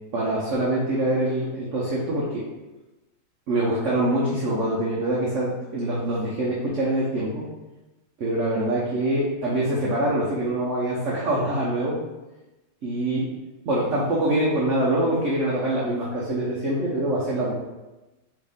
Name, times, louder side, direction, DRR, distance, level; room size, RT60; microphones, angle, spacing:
voice 1, 0.1-2.4 3.5-7.4 8.2-12.0 12.8-13.3 13.7-17.5, right 1 dB, 80° right, -5 dB, 0.6 m, -24 dB
3.4 x 2.5 x 3.4 m, 1.1 s
omnidirectional pair, 2.0 m